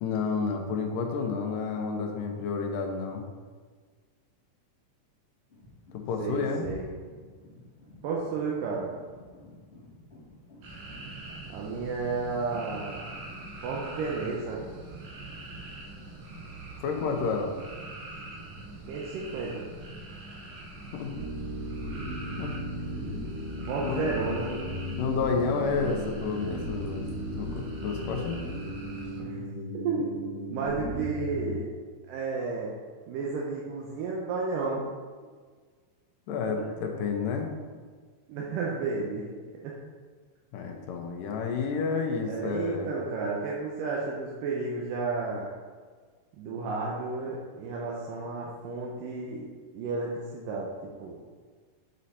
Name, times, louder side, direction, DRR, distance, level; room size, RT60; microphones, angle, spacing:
voice 1, 0.0-3.2 5.9-6.7 16.8-17.5 20.9-21.1 22.4-22.5 23.8-24.0 25.0-27.1 27.4-28.4 36.3-37.5 40.5-42.9, left 5 dB, 85° left, 3 dB, 2.4 m, -30 dB
sound 1, 5.5-11.3, equal, 60° left, 0.7 m, -51 dB
voice 2, 6.2-6.9 8.0-8.9 11.5-13.1 13.6-14.6 18.9-19.7 23.6-24.6 29.2-29.4 29.7-30.1 30.5-31.7 32.1-32.7 33.1-34.9 38.3-39.3 39.6-39.8 42.2-45.5 46.3-49.5 49.7-51.2, right 4 dB, 85° right, -3 dB, 2.4 m, -32 dB
sound 2, 10.6-29.2, right 2 dB, 65° right, 2.1 m, -43 dB
sound 3, 21.1-31.6, equal, 45° right, 2.6 m, -36 dB
7.7 x 4.3 x 4.2 m, 1.5 s
omnidirectional pair, 3.8 m